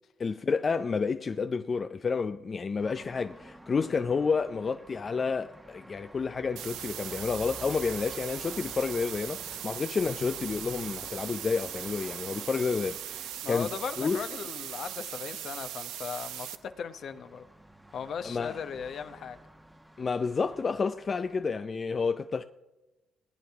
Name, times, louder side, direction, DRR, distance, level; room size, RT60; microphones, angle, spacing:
voice 1, 0.2-13.7 14.0-14.2 18.2-18.6 20.0-22.4, left 5 dB, 40° left, 0.5 m, -30 dB
sound 1, 2.8-21.5, right 1 dB, 5° right, 1.0 m, -51 dB
sound 2, 6.6-16.6, right 12 dB, 85° right, 0.6 m, -39 dB
voice 2, 13.4-17.4 17.9-19.4, left 7 dB, 60° left, 1.0 m, -38 dB
18.5 x 9.3 x 3.5 m
supercardioid pair, 75°, 0 cm